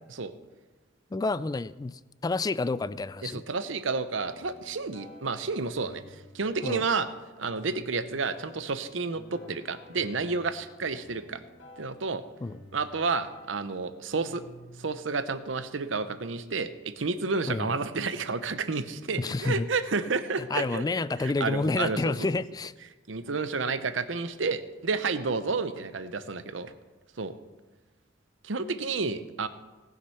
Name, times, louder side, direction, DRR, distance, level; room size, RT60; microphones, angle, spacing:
voice 1, 1.1-3.4 6.6-6.8 12.4-12.6 17.5-17.7 19.2-19.7 20.4-22.7, left 3 dB, 20° left, 17 dB, 0.3 m, -29 dB
voice 2, 3.2-6.0 6.3-7.1 7.4-11.4 11.8-12.2 12.7-14.4 14.8-20.8 21.2-22.1 23.1-26.7 27.2-27.3 28.4-29.5, right 4 dB, 80° right, 12 dB, 0.8 m, -30 dB
sound 1, 4.2-14.9, left 1 dB, 65° left, 1.9 m, -51 dB
18.5 x 6.6 x 5.7 m, 1.2 s
head